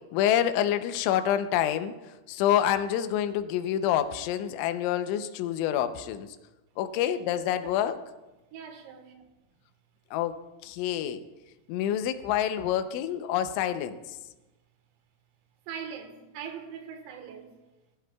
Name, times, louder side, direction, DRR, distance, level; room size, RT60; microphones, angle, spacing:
voice 1, 0.1-1.9 2.3-6.3 6.8-8.0 10.1-10.4 10.6-11.2 11.7-14.0, left 10 dB, 80° left, 2.9 m, -27 dB
voice 2, 7.0-7.3 7.6-7.8 8.5-9.1 15.7-17.6, right 7 dB, 85° right, 4.0 m, -41 dB
18.5 x 15.5 x 2.3 m
omnidirectional pair, 6.0 m